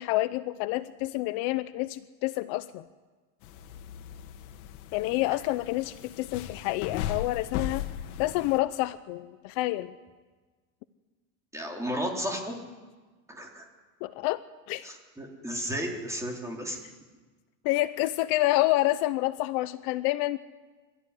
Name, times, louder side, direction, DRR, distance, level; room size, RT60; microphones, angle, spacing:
voice 1, 0.0-2.9 4.9-7.9 8.2-9.9 14.0-14.4 14.7-14.9 17.6-20.4, left 18 dB, 60° left, 13 dB, 0.8 m, -28 dB
sound 1, 3.4-8.6, left 10 dB, 80° left, 1.8 m, -37 dB
voice 2, 11.5-12.6 13.3-13.7 14.8-16.8, equal, 5° right, 0 dB, 3.7 m, -33 dB
25.0 x 14.0 x 9.8 m, 1.3 s
cardioid pair, 150°, 43 cm